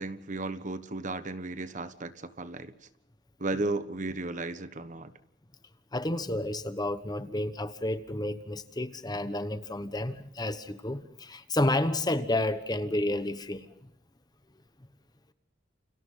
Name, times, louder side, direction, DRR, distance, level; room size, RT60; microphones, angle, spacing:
voice 1, 0.0-2.7 3.4-5.1, right 2 dB, 40° right, 1.3 m, -34 dB
voice 2, 5.9-13.9, left 1 dB, 20° left, 1.2 m, -31 dB
29.5 x 29.0 x 3.9 m
head